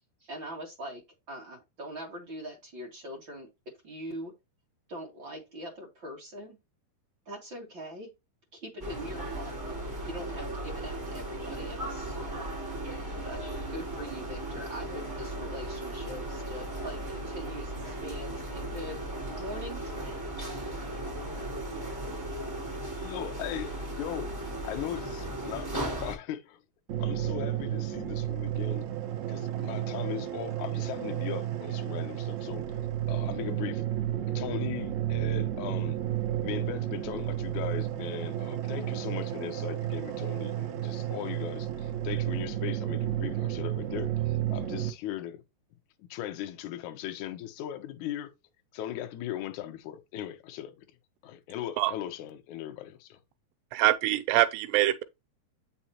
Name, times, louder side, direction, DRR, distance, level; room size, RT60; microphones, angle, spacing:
voice 1, 0.2-1.0 1.3-3.5 3.8-4.3 4.9-6.6 7.3-8.1 8.5-9.6 10.0-12.2 13.2-13.4 13.7-19.0 19.3-20.2, equal, 40° right, 2.0 m, -42 dB
sound 1, 8.8-26.1, right 1 dB, 5° right, 3.3 m, -36 dB
voice 2, 23.0-24.3 24.6-26.6 27.0-28.9 29.3-32.8 33.1-33.8 34.3-36.0 36.4-45.4 46.0-48.3 48.7-50.8 51.2-53.2, left 11 dB, 75° left, 1.8 m, -38 dB
sound 2, 26.9-44.9, right 12 dB, 70° right, 1.9 m, -32 dB
voice 3, 53.7-55.0, right 15 dB, 85° right, 2.8 m, -24 dB
8.5 x 6.0 x 2.9 m
omnidirectional pair, 4.7 m